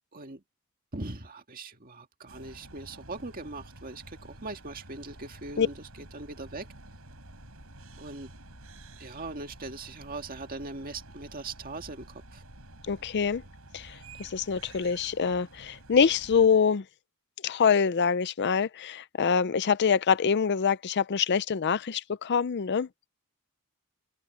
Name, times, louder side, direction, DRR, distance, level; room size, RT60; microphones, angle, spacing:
voice 1, 0.1-0.4 0.9-6.7 8.0-8.3 9.0-12.4, right 3 dB, 40° right, 2.0 m, -40 dB
sound 1, 2.3-16.5, right 1 dB, 70° right, 7.4 m, -50 dB
voice 2, 12.9-13.4 13.7-16.8 17.4-22.9, left 6 dB, 50° left, 0.5 m, -25 dB
head